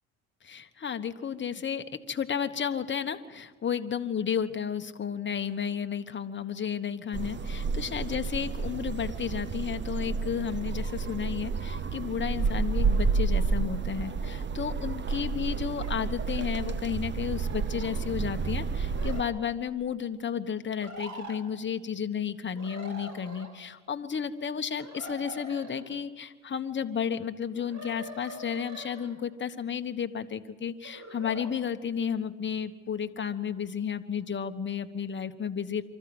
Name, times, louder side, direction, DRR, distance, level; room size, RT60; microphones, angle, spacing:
voice 1, 0.4-35.8, left 7 dB, 30° left, 8 dB, 1.3 m, -32 dB
sound 1, 7.1-19.2, right 4 dB, 30° right, 0.9 m, -30 dB
sound 2, 13.9-14.7 15.8-16.0 17.3-18.0 18.8-19.3 20.8-21.4 22.5-23.5 24.8-25.8 27.5-29.1 30.8-31.5, equal, 45° right, 4.0 m, -43 dB
25.0 x 14.0 x 7.9 m, 1.3 s
supercardioid pair, 80°, 40 cm